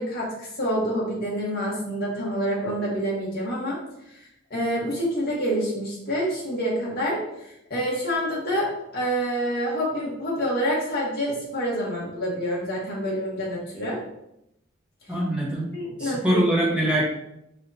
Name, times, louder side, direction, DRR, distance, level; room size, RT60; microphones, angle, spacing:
voice 1, 0.0-3.8 4.1-4.2 4.5-14.0 15.7-16.4 16.9-17.0, equal, 50° left, -4 dB, 1.5 m, -27 dB
voice 2, 15.1-15.7 16.0-17.0, right 1 dB, 5° right, -5 dB, 1.2 m, -23 dB
4.8 x 3.7 x 2.8 m, 0.82 s
head